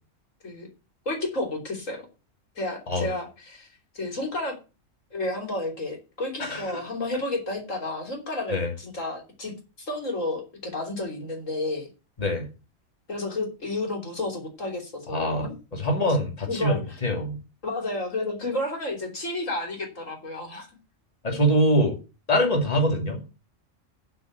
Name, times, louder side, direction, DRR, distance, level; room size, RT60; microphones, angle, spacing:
voice 1, 1.1-2.1 2.6-3.7 3.9-4.6 5.1-11.9 13.1-15.6 16.5-17.0 17.6-20.7, left 2 dB, 70° left, 2 dB, 3.6 m, -31 dB
voice 2, 6.4-6.8 8.5-8.7 12.2-12.5 15.1-17.4 21.2-22.0 22.3-23.2, equal, 30° left, 1 dB, 2.7 m, -24 dB
12.0 x 5.1 x 8.1 m, 0.31 s
omnidirectional pair, 1.4 m